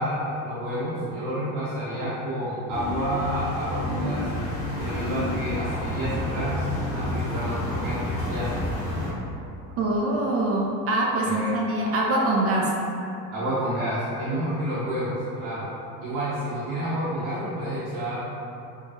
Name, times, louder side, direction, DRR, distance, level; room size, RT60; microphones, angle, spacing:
voice 1, 0.0-4.3 4.7-8.5 11.2-11.5 13.3-15.7 16.0-18.2, equal, 60° right, -10 dB, 1.0 m, -29 dB
sound 1, 2.7-9.1, left 1 dB, 35° left, 1.4 m, -30 dB
voice 2, 9.8-12.7, right 1 dB, 30° right, -2 dB, 0.4 m, -24 dB
4.5 x 2.3 x 2.8 m, 2.8 s
hypercardioid pair, 85°, 49 cm